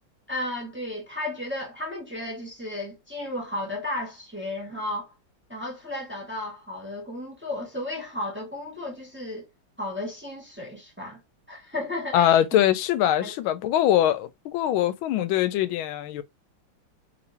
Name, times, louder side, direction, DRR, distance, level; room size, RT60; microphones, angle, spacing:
voice 1, 0.3-5.1 5.5-9.5 9.8-11.2 11.5-12.4 13.2-13.3, left 1 dB, 10° right, 0.8 m, -34 dB
voice 2, 12.1-16.2, left 12 dB, 85° left, 1.4 m, -22 dB
3.4 x 3.0 x 2.6 m
omnidirectional pair, 2.2 m